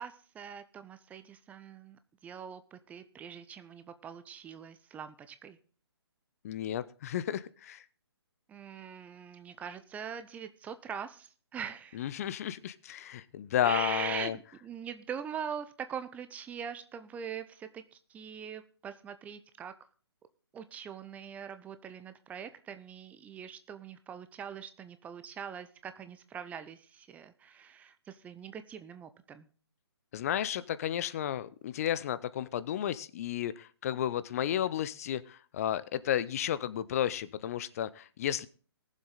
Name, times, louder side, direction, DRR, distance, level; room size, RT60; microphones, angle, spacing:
voice 1, 0.0-5.6 8.5-12.1 13.6-19.7 20.5-29.5, right 7 dB, 10° right, 11 dB, 0.6 m, -42 dB
voice 2, 6.4-7.8 11.9-14.4 30.1-38.5, left 10 dB, 35° left, 16 dB, 0.6 m, -32 dB
19.0 x 7.4 x 4.0 m, 0.39 s
figure-of-eight pair, 135°, 14 cm